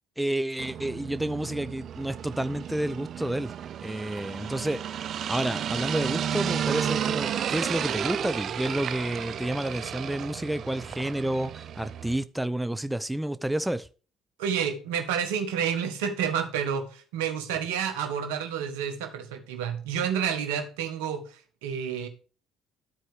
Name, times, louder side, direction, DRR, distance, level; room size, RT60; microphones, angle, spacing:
voice 1, 0.2-3.5 3.8-4.8 5.3-13.9, right 1 dB, 5° right, 0.6 m, -30 dB
sound 1, 0.6-12.2, right 9 dB, 60° right, 0.7 m, -32 dB
voice 2, 14.4-22.1, right 8 dB, 85° right, 1.5 m, -29 dB
13.0 x 4.7 x 4.9 m
hypercardioid pair, 60°, 0 cm